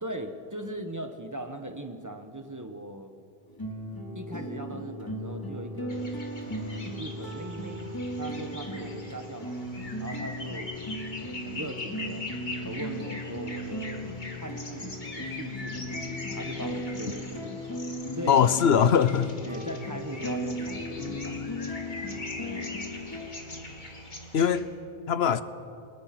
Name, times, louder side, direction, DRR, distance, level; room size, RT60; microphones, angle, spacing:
voice 1, 0.0-3.1 4.1-6.1 6.5-7.9 8.2-10.7 11.2-12.3 12.6-18.4 19.4-21.5 22.4-22.8, right 1 dB, 15° right, 1.3 m, -40 dB
sound 1, 3.5-23.3, equal, 20° left, 2.4 m, -37 dB
sound 2, 5.9-24.6, left 2 dB, 45° left, 2.3 m, -42 dB
voice 2, 18.3-19.3 24.3-24.7 25.1-25.4, left 7 dB, 75° left, 1.0 m, -21 dB
29.5 x 20.5 x 6.0 m
omnidirectional pair, 1.1 m